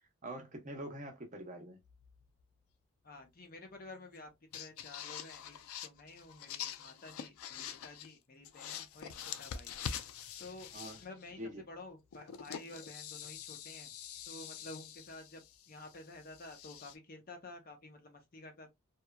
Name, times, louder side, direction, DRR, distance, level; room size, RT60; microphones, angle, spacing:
voice 1, 0.2-1.8 10.7-11.0 11.4-11.7, right 1 dB, 35° right, 0.7 m, -44 dB
sound 1, 1.8-2.4 4.2-4.3 4.5-8.1 8.4-11.3 12.1-17.0, left 8 dB, 80° left, 0.4 m, -45 dB
voice 2, 3.0-5.6 5.8-9.7 10.4-10.7 11.0-13.9 14.3-18.7, left 2 dB, 45° left, 0.7 m, -51 dB
2.9 x 2.3 x 2.2 m
head